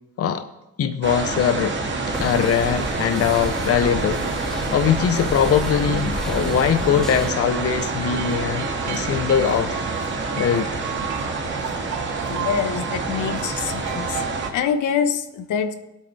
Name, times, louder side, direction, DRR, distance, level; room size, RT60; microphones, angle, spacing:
voice 1, 0.8-1.7 2.2-9.8 10.4-10.7 13.3-13.4, left 8 dB, 50° left, 0.8 m, -21 dB
sound 1, 1.0-14.5, right 3 dB, 40° right, 1.9 m, -27 dB
sound 2, 2.1-7.3, equal, ahead, 0.5 m, -32 dB
sound 3, 6.5-14.5, right 9 dB, 70° right, 0.9 m, -34 dB
voice 2, 12.3-14.2 14.5-15.7, left 7 dB, 80° left, 1.1 m, -25 dB
18.5 x 8.5 x 3.4 m
cardioid pair, 90°, 30 cm